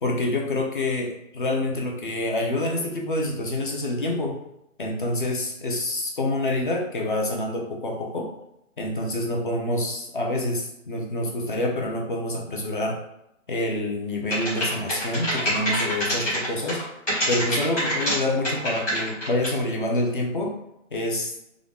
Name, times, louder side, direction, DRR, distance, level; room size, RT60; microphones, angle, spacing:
voice 1, 0.0-4.4 4.8-8.3 8.8-13.0 13.5-16.8 17.3-20.6 20.9-21.3, left 1 dB, 40° left, 0 dB, 0.7 m, -27 dB
sound 1, 14.3-16.8 17.1-18.2 18.4-19.6, equal, 10° left, 1.0 m, -25 dB
3.8 x 2.4 x 3.4 m, 0.83 s
hypercardioid pair, 175°, 39 cm